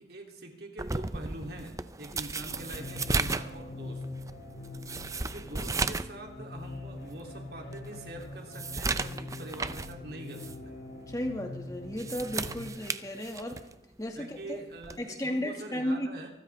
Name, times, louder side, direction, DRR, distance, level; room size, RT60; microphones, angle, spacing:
voice 1, 0.0-4.0 5.2-10.7 14.1-16.3, right 1 dB, 55° right, 1 dB, 2.9 m, -44 dB
sound 1, 0.8-6.2 6.5-6.6 7.2-7.3 7.7-10.0 10.3-10.6 11.8-13.7 14.8-15.1, right 3 dB, 15° right, 0.5 m, -34 dB
sound 2, 2.5-12.7, left 2 dB, 90° left, 6.9 m, -43 dB
voice 2, 11.1-13.6 14.0-14.6 15.0-16.1, left 1 dB, 20° left, 3 dB, 1.8 m, -34 dB
24.0 x 13.0 x 3.4 m, 0.88 s
head